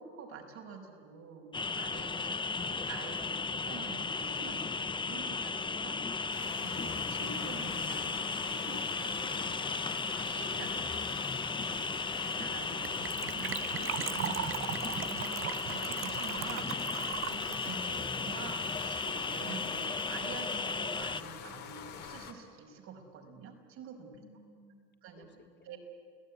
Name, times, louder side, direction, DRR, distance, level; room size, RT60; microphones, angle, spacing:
voice 1, 0.0-2.4 2.7-24.1 25.0-25.3 25.6-25.8, right 6 dB, 70° right, 2 dB, 5.7 m, -47 dB
sound 1, 1.5-21.2, left 4 dB, 15° left, 0.8 m, -35 dB
sound 2, 6.3-22.3, left 8 dB, 70° left, 2.9 m, -45 dB
Gurgling / Trickle dribble / Fill (with liquid), 12.9-19.1 19.3-19.4 19.6-19.8 20.1-20.2, right 12 dB, 45° right, 0.7 m, -39 dB
voice 2, 24.1-24.8 25.2-25.8, left 3 dB, 35° left, 6 dB, 3.1 m, -58 dB
30.0 x 17.5 x 9.7 m, 2.1 s
supercardioid pair, 85°, 30 cm